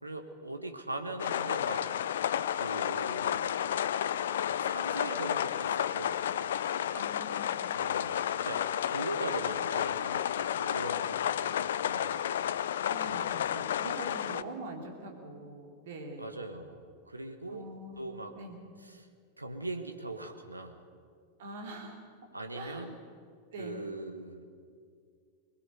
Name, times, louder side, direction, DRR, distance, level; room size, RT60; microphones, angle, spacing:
voice 1, 0.0-1.9 2.5-3.5 4.5-6.2 7.7-12.2 13.0-13.4 16.2-17.7 18.0-18.4 18.8-19.1 19.4-20.8 22.3-23.0 23.6-24.5, right 2 dB, 85° right, 7 dB, 1.3 m, -41 dB
sound 1, 1.2-14.4, left 10 dB, 60° left, 0.5 m, -31 dB
voice 2, 6.9-7.6 12.9-16.2 17.5-18.1 18.4-18.6 21.4-22.0 22.5-22.9 23.5-23.8, right 2 dB, 60° right, 2 dB, 3.5 m, -43 dB
21.5 x 20.0 x 6.7 m, 2.2 s
figure-of-eight pair, 90°, 0 cm